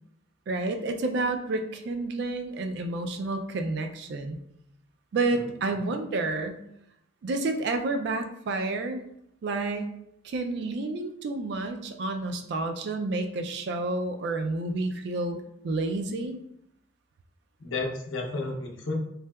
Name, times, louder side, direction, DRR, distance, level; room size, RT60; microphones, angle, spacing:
voice 1, 0.5-4.4 5.1-6.6 7.2-9.0 9.4-9.9 10.2-16.4, right 2 dB, 55° right, 6 dB, 0.3 m, -30 dB
voice 2, 5.3-5.8 17.6-18.9, left 3 dB, 75° left, 0 dB, 0.6 m, -33 dB
3.2 x 2.7 x 2.2 m, 0.78 s
head